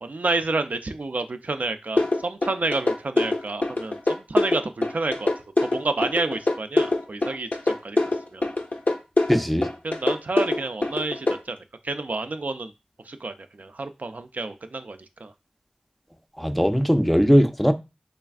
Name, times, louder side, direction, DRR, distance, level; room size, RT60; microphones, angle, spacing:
voice 1, 0.0-5.3 5.6-8.0 8.3-8.4 9.8-11.6 11.8-12.7 13.1-15.3, right 3 dB, 75° right, 8 dB, 0.3 m, -29 dB
sound 1, 2.0-11.4, left 2 dB, 70° left, 0.6 m, -23 dB
voice 2, 9.3-9.7 16.4-17.7, equal, 5° left, 7 dB, 0.4 m, -19 dB
4.1 x 3.3 x 2.3 m, 0.26 s
wide cardioid pair, 50°, 3 cm